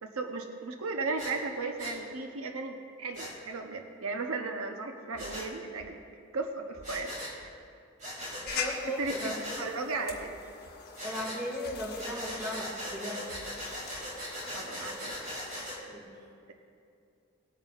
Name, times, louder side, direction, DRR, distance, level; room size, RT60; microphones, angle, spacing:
voice 1, 0.0-6.0 6.3-7.5 8.8-10.3 14.5-15.2, right 3 dB, 85° right, 4 dB, 0.8 m, -36 dB
Breathing, 1.2-1.3 1.8-2.0 3.1-3.3 5.2-5.5 6.8-7.3 8.0-8.6 9.0-9.6 11.0-11.4 12.0-15.8, equal, 35° right, 2.5 m, -39 dB
sound 1, 5.1-5.4 5.8-5.9 6.7-7.0 7.4-7.5 8.4-8.7 9.0-9.1 10.1-10.3 10.7-10.8 11.7-11.9 12.3-12.4 13.3-13.5 13.9-14.1, left 1 dB, 65° left, 0.7 m, -52 dB
voice 2, 8.3-9.6 11.0-13.2 15.9-16.1, equal, 5° right, -4 dB, 2.1 m, -37 dB
sound 2, 8.5-15.8, left 5 dB, 45° left, 1.4 m, -43 dB
19.0 x 9.1 x 2.5 m, 2.5 s
head